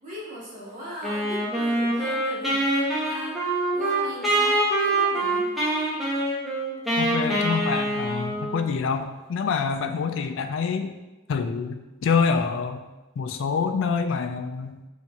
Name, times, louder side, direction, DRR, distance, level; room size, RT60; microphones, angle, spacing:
voice 1, 0.0-5.5, equal, 40° right, -8 dB, 1.4 m, -38 dB
Wind instrument woodwind instrument, 1.0-8.7, right 1 dB, ahead, 0.7 m, -25 dB
voice 2, 7.0-10.9 11.3-12.9 13.2-14.8, left 5 dB, 60° left, 7 dB, 0.3 m, -26 dB
5.5 x 2.6 x 2.3 m, 1.1 s
head